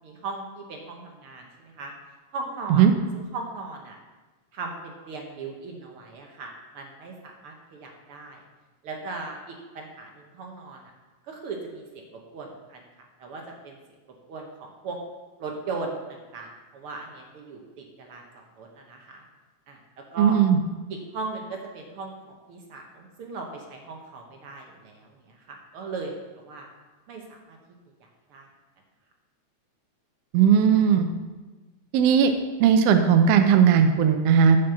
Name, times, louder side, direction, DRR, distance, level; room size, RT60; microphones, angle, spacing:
voice 1, 0.0-1.9 2.3-2.8 3.1-4.0 4.5-8.4 8.8-10.8 11.2-12.8 13.2-13.8 14.3-15.0 15.4-19.2 19.7-20.4 20.9-26.7 27.1-27.6 28.3-28.5, right 3 dB, 65° right, 1 dB, 1.5 m, -38 dB
voice 2, 20.2-20.6 30.3-31.1 31.9-32.3 32.6-34.6, right 7 dB, 80° right, 7 dB, 1.4 m, -17 dB
8.9 x 5.3 x 6.9 m, 1.2 s
omnidirectional pair, 3.4 m